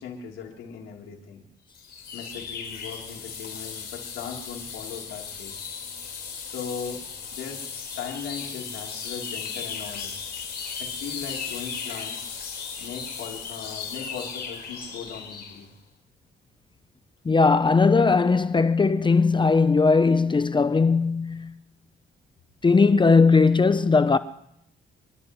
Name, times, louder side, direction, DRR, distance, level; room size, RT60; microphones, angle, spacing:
voice 1, 0.0-1.4 2.1-5.6 6.4-7.0 7.3-7.6 7.9-10.2 10.8-12.2 12.8-15.7, left 6 dB, 90° left, 3.5 m, -38 dB
sound 1, 1.7-15.6, left 6 dB, 55° left, 4.6 m, -36 dB
voice 2, 17.2-21.6 22.6-24.2, left 4 dB, 25° left, 0.7 m, -19 dB
28.0 x 12.0 x 3.1 m
cardioid pair, 90°, 20 cm